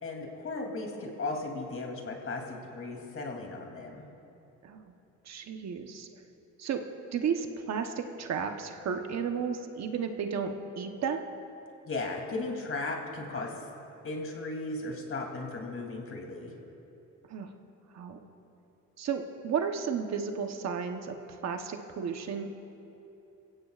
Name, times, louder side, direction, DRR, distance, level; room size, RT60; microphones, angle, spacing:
voice 1, 0.0-4.0 11.8-13.5 14.0-16.5, left 2 dB, 45° left, 1 dB, 3.0 m, -36 dB
voice 2, 5.2-6.1 6.6-6.8 7.1-11.3 17.3-17.5 17.9-18.2 19.0-22.6, right 6 dB, 60° right, 5 dB, 1.1 m, -33 dB
23.0 x 16.5 x 2.5 m, 2.8 s
cardioid pair, 90°, 30 cm